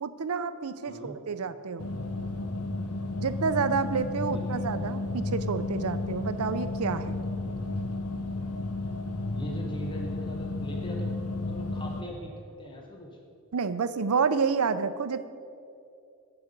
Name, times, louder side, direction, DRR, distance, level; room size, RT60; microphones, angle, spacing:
voice 1, 0.0-1.9 3.2-7.2 13.5-15.3, right 5 dB, 80° right, 12 dB, 0.6 m, -29 dB
voice 2, 0.9-1.2 4.3-4.7 9.3-11.1 11.4-13.1, equal, 20° left, 0 dB, 1.1 m, -40 dB
sound 1, 1.8-12.0, left 2 dB, 90° left, 0.9 m, -33 dB
16.5 x 6.9 x 5.3 m, 2.6 s
head